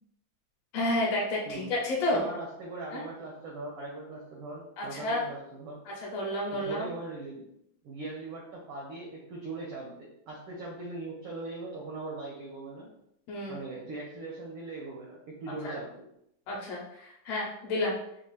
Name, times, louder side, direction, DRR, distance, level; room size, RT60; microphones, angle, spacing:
voice 1, 0.7-2.2 2.9-3.0 4.8-5.2 6.0-6.9 13.3-13.6 15.6-15.8 16.5-18.0, left 1 dB, 70° left, -3 dB, 1.6 m, -30 dB
voice 2, 2.1-5.8 6.5-7.5 7.8-12.9 13.5-16.0, right 2 dB, 80° right, -2 dB, 1.2 m, -40 dB
5.1 x 2.4 x 3.0 m, 0.78 s
omnidirectional pair, 3.3 m